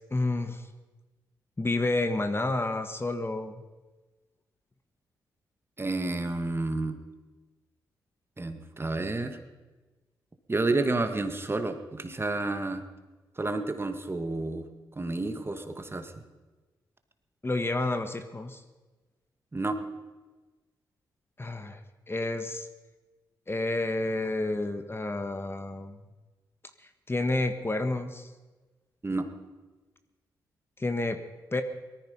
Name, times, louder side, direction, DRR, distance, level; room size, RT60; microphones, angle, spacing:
voice 1, 0.1-0.7 1.6-3.6 17.4-18.6 21.4-21.8 22.1-22.7 23.5-26.0 27.1-28.3 30.8-31.2 31.5-31.6, left 2 dB, 25° left, 8 dB, 1.6 m, -29 dB
voice 2, 5.8-7.0 8.4-9.4 10.5-12.8 13.4-14.7 15.0-16.1 19.5-19.8 29.0-29.3, right 2 dB, 25° right, 7 dB, 2.0 m, -30 dB
18.5 x 14.0 x 5.7 m, 1.2 s
supercardioid pair, 45°, 9 cm